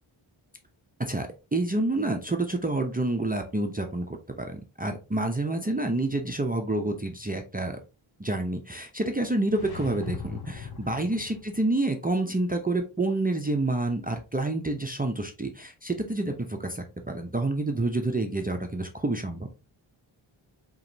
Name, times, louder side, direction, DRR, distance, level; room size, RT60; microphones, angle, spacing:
voice 1, 1.0-7.8 8.2-19.5, right 2 dB, 20° right, 3 dB, 0.6 m, -28 dB
sound 1, 9.4-11.7, left 7 dB, 50° left, 0.8 m, -40 dB
4.8 x 3.0 x 2.6 m, 0.30 s
wide cardioid pair, 75°, 48 cm